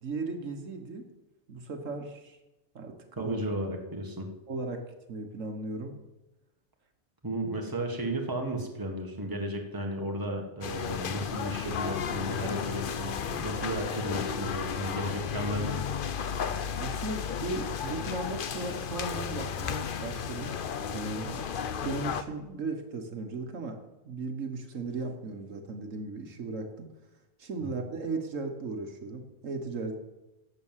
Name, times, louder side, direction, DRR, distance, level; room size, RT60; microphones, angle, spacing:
voice 1, 0.0-1.1 1.5-2.4 2.7-3.4 4.5-6.0 16.8-20.5 20.9-21.4 21.8-26.9 27.4-30.0, right 3 dB, 75° right, 5 dB, 1.6 m, -36 dB
voice 2, 3.2-4.3 7.2-15.8 27.6-27.7, right 1 dB, 15° right, 2 dB, 1.5 m, -34 dB
sound 1, 10.6-22.2, left 7 dB, 50° left, 0.7 m, -34 dB
11.0 x 7.4 x 7.4 m, 1.0 s
omnidirectional pair, 1.3 m